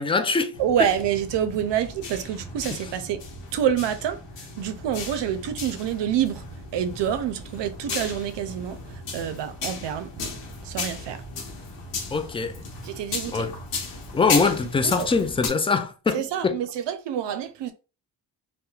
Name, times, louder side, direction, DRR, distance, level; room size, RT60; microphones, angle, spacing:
voice 1, 0.0-0.9 12.1-12.6 13.3-13.5 14.1-16.6, left 4 dB, 15° left, 0.3 m, -23 dB
sound 1, 0.5-15.5, left 4 dB, 85° left, 0.9 m, -35 dB
voice 2, 0.6-3.2 3.5-4.2 4.6-6.4 6.7-8.8 9.1-10.3 10.6-11.2 12.8-13.5 14.8-15.1 16.1-17.7, right 9 dB, 75° right, 0.5 m, -27 dB
2.9 x 2.1 x 2.3 m
cardioid pair, 70°, 43 cm